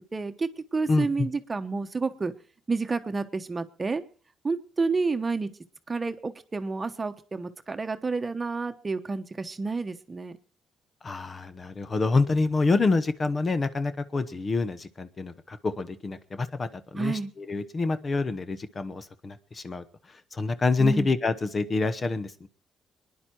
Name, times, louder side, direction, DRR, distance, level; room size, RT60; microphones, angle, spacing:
voice 1, 0.0-2.3 2.7-4.0 4.4-5.5 5.9-10.4 16.9-17.3 20.8-21.1, right 4 dB, 30° right, 9 dB, 1.1 m, -30 dB
voice 2, 0.9-1.3 11.0-19.8 20.3-22.5, left 3 dB, 35° left, 12 dB, 1.0 m, -27 dB
23.0 x 10.5 x 4.5 m, 0.42 s
cardioid pair, 90°, 0 cm